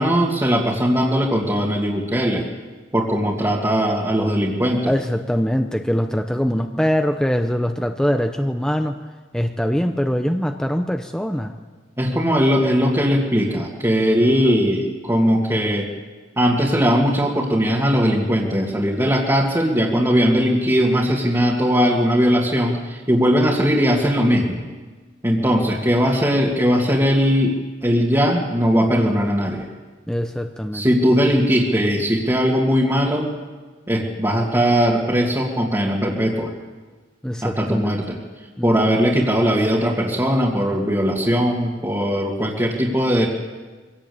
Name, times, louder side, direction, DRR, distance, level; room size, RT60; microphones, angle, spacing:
voice 1, 0.0-2.5 2.9-4.9 12.0-15.9 16.4-24.6 25.2-27.6 27.8-29.7 30.7-33.3 33.9-36.5 37.4-38.2 38.6-43.3, equal, 15° right, -4 dB, 2.3 m, -19 dB
voice 2, 4.9-9.0 9.3-11.6 30.1-30.9 37.2-38.0 38.6-38.7, equal, 5° left, 5 dB, 0.8 m, -22 dB
23.5 x 17.5 x 8.6 m, 1.4 s
head